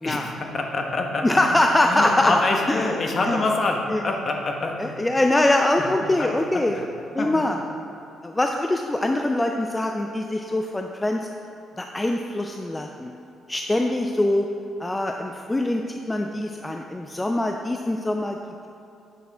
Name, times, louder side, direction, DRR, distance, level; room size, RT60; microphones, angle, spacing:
voice 1, 0.0-1.2 1.8-5.0 5.8-6.3 6.5-6.9 7.2-7.5, left 3 dB, 40° left, 2 dB, 1.0 m, -26 dB
voice 2, 1.2-2.9 3.3-3.4 3.9-4.0 4.8-6.8 7.1-7.6 8.2-11.2 11.8-13.1 13.5-14.5 14.8-18.4, left 1 dB, 15° left, 3 dB, 0.4 m, -23 dB
8.6 x 6.0 x 3.4 m, 2.7 s
cardioid pair, 90°, 0 cm